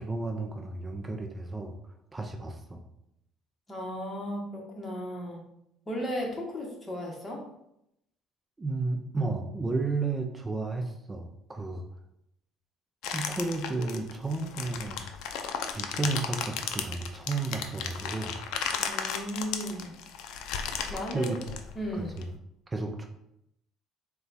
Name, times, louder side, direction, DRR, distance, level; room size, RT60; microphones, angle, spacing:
voice 1, 0.0-1.7 2.1-2.8 8.6-11.8 13.1-15.0 15.7-18.4 21.1-21.4 22.0-22.2 22.7-23.1, right 3 dB, 20° right, 4 dB, 0.5 m, -32 dB
voice 2, 3.7-5.4 5.8-7.4 18.8-19.9 20.9-21.3 21.7-22.2, equal, 20° left, -1 dB, 1.2 m, -35 dB
sound 1, 13.0-22.2, left 7 dB, 75° left, 0.4 m, -35 dB
4.0 x 2.3 x 4.0 m, 0.80 s
supercardioid pair, 95°, 0 cm